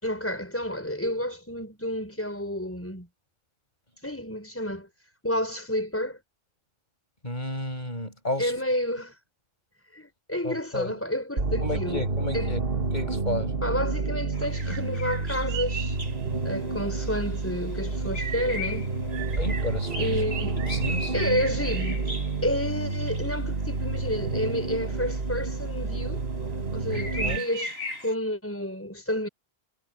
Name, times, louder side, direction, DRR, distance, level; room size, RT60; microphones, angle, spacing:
voice 1, 0.0-3.1 4.0-4.9 5.2-6.2 8.4-9.2 9.9-12.1 12.3-12.5 13.6-16.0 16.4-18.9 20.0-20.6 21.1-22.1 22.4-26.3 26.7-29.3, left 1 dB, 15° left, 6.1 m, -30 dB
voice 2, 7.2-8.5 10.4-11.0 11.6-12.6 12.9-13.6 19.4-20.2 20.6-21.1 26.9-27.4, left 1 dB, 45° left, 7.2 m, -32 dB
sound 1, 11.4-27.4, right 3 dB, 65° right, 1.9 m, -29 dB
sound 2, 14.3-28.1, right 2 dB, 90° right, 4.0 m, -39 dB
omnidirectional pair, 1.0 m